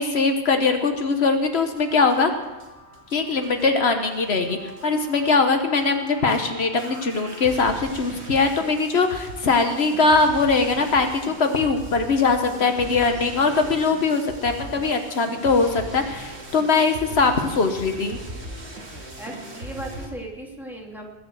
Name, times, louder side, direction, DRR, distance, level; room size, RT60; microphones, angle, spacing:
voice 1, 0.0-2.3 3.1-18.2, left 4 dB, 75° left, 6 dB, 1.4 m, -21 dB
sound 1, 1.7-20.1, right 1 dB, 80° right, 2.4 m, -39 dB
voice 2, 19.2-21.2, right 1 dB, ahead, -2 dB, 2.7 m, -37 dB
20.5 x 7.0 x 7.8 m, 1.1 s
omnidirectional pair, 1.1 m